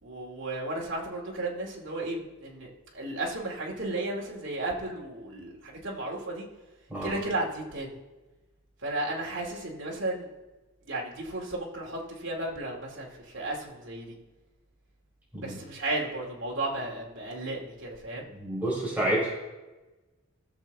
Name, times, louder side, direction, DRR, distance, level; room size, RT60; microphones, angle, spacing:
voice 1, 0.0-6.5 7.0-7.9 8.8-10.3 10.9-14.1 15.4-18.3, right 2 dB, 60° right, -2 dB, 2.4 m, -34 dB
voice 2, 18.3-19.3, right 1 dB, 10° right, -6 dB, 4.3 m, -29 dB
17.0 x 6.9 x 3.5 m, 1.1 s
head